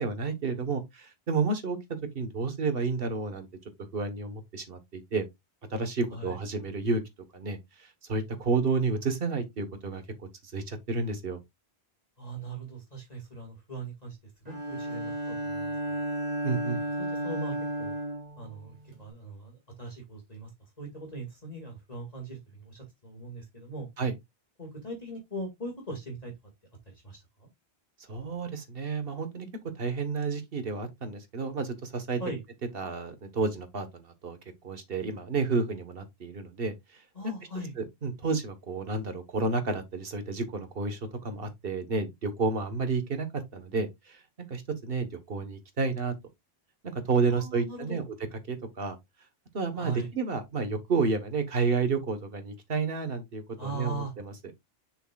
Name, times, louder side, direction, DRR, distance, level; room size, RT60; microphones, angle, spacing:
voice 1, 0.0-3.5 3.9-5.2 5.7-7.0 7.3-10.0 10.5-11.4 16.4-16.8 24.0-24.1 28.1-29.5 29.8-32.2 32.7-34.4 34.6-36.7 37.2-37.3 37.8-44.2 44.5-46.1 47.0-48.0 48.5-48.9 49.5-54.3, right 4 dB, 60° right, 1.5 m, -30 dB
voice 2, 12.2-14.2 14.5-16.0 17.0-17.9 18.4-20.5 20.8-23.9 24.6-26.3 26.9-27.5 32.2-32.4 37.1-37.7 47.3-48.0 49.7-50.1 53.6-54.1, right 2 dB, 35° left, 2.2 m, -40 dB
Bowed string instrument, 14.5-19.1, right 1 dB, 35° right, 2.2 m, -33 dB
6.7 x 6.2 x 2.4 m
omnidirectional pair, 1.1 m